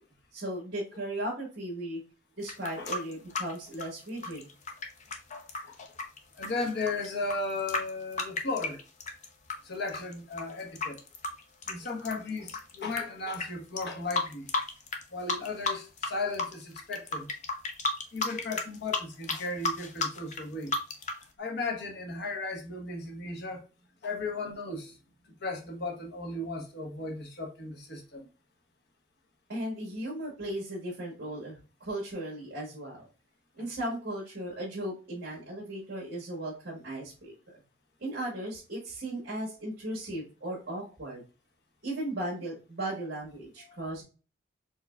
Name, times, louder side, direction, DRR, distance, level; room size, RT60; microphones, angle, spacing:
voice 1, 0.3-2.0 2.4-4.4 29.5-33.1 33.6-37.6 38.0-41.2 41.8-44.0, right 1 dB, 55° right, 1.5 m, -36 dB
sound 1, 2.4-9.6 9.9-13.0 13.3-13.5 13.8-15.0 15.3-16.1 16.3-21.2, left 3 dB, 40° left, 0.7 m, -33 dB
voice 2, 6.3-8.8 9.6-11.0 11.7-14.5 15.1-17.3 18.1-20.8 21.4-23.6 24.0-25.0 25.4-28.3 33.6-33.7 43.7-43.8, left 3 dB, 60° left, 1.1 m, -35 dB
4.5 x 3.1 x 2.3 m
head